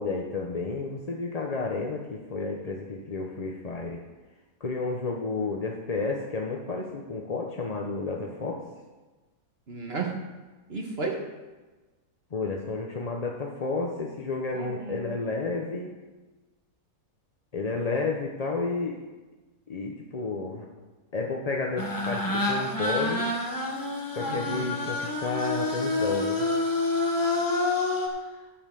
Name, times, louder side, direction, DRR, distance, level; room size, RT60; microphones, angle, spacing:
voice 1, 0.0-4.0 4.6-8.6 12.3-15.9 17.5-19.0 19.7-20.7 21.1-23.3 24.2-26.5, left 3 dB, 35° left, 0 dB, 0.6 m, -31 dB
voice 2, 9.7-10.1 10.7-11.2 14.5-15.0 24.2-24.7 28.3-28.4, right 4 dB, 40° right, 1 dB, 1.4 m, -33 dB
sound 1, 21.8-28.1, left 2 dB, 15° left, 1.0 m, -28 dB
9.9 x 5.5 x 6.7 m, 1.2 s
omnidirectional pair, 1.7 m